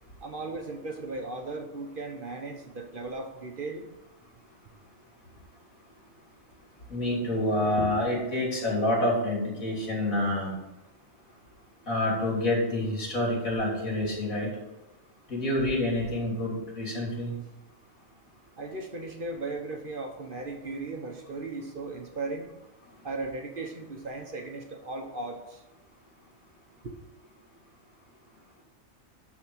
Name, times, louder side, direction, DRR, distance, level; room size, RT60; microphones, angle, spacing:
voice 1, 0.2-3.9 18.6-22.5 23.0-25.6 26.8-26.9, right 3 dB, 40° right, 3 dB, 1.2 m, -37 dB
voice 2, 6.9-10.5 11.9-14.5 15.3-17.3, left 1 dB, 85° left, -3 dB, 3.8 m, -27 dB
12.0 x 4.3 x 6.4 m, 0.94 s
omnidirectional pair, 1.4 m